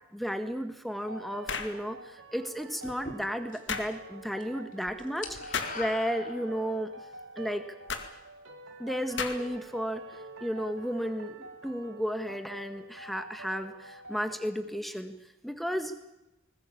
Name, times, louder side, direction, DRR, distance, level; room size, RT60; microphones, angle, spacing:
voice 1, 0.1-6.9 7.3-7.6 8.8-10.0 10.4-15.2 15.4-15.9, equal, ahead, 9 dB, 1.6 m, -33 dB
sound 1, 1.0-14.4, right 2 dB, 90° right, 3.6 m, -47 dB
sound 2, 1.5-1.8 3.7-3.9 5.5-5.8 7.9-8.1 9.2-9.6, left 5 dB, 60° left, 2.2 m, -33 dB
sound 3, 2.8-3.8 4.1-4.5 4.7-6.8, left 3 dB, 40° left, 3.0 m, -42 dB
20.5 x 20.5 x 8.6 m, 0.97 s
head